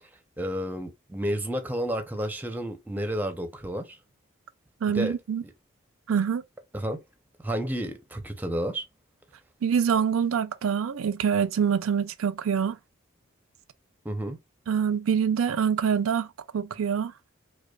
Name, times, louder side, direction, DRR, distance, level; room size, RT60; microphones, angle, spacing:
voice 1, 0.4-4.0 4.9-5.2 6.7-7.0 7.4-8.8 14.0-14.4, equal, 10° right, 0.5 m, -31 dB
voice 2, 4.8-5.4 6.1-6.4 9.6-12.8 14.7-16.3 16.5-17.1, right 7 dB, 75° right, 0.4 m, -25 dB
4.9 x 2.2 x 2.2 m
head